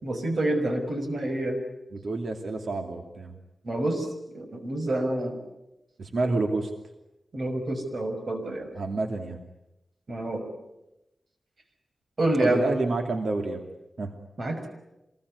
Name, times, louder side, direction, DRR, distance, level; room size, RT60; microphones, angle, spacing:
voice 1, 0.0-1.6 3.6-4.1 4.3-5.4 7.3-8.7 10.1-10.4 12.2-12.6 14.4-14.7, right 1 dB, 50° right, 6 dB, 5.8 m, -27 dB
voice 2, 1.9-3.3 6.0-6.7 8.8-9.4 12.4-13.6 14.0-14.1, right 3 dB, 70° right, 4 dB, 2.6 m, -29 dB
26.0 x 21.0 x 9.7 m, 0.94 s
wide cardioid pair, 105°, 0 cm